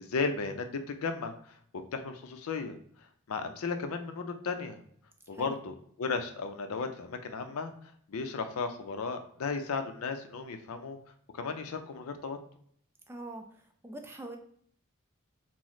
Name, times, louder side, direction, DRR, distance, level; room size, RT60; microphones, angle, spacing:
voice 1, 0.0-1.6 1.9-4.8 5.3-11.0 11.3-12.4, left 4 dB, 75° left, 7 dB, 0.4 m, -35 dB
voice 2, 13.1-14.4, right 2 dB, 10° right, 4 dB, 0.3 m, -43 dB
3.0 x 2.0 x 3.9 m, 0.62 s
head